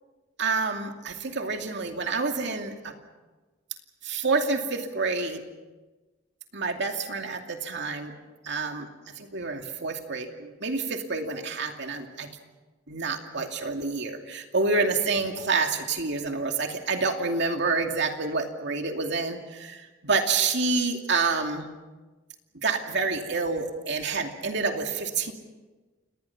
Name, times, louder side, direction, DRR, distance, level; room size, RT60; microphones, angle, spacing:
voice 1, 0.4-2.9 4.0-5.4 6.5-8.1 8.4-8.9 9.2-12.3 12.9-21.6 22.5-25.3, right 4 dB, 65° right, 4 dB, 2.6 m, -28 dB
29.0 x 19.5 x 6.0 m, 1.3 s
head